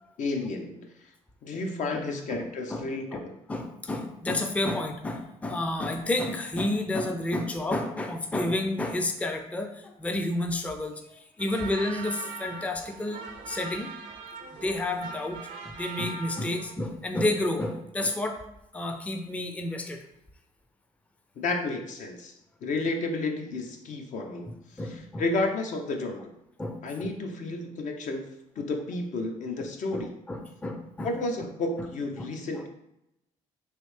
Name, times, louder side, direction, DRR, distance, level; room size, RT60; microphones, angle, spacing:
voice 1, 0.2-1.1 1.4-3.3 14.4-14.5 21.4-22.3 22.6-26.3 26.8-28.3 28.6-30.1 31.0-32.7, left 2 dB, 60° left, 4 dB, 0.6 m, -32 dB
voice 2, 2.3-2.8 3.1-3.2 3.5-13.9 14.6-18.4 18.7-20.0 24.5-25.2 26.6-27.1 29.6-31.1 32.6-32.7, left 1 dB, 10° left, 5 dB, 0.4 m, -31 dB
sound 1, 11.4-16.8, right 5 dB, 75° right, 0.5 m, -41 dB
3.2 x 2.6 x 3.2 m, 0.85 s
supercardioid pair, 70°, 14 cm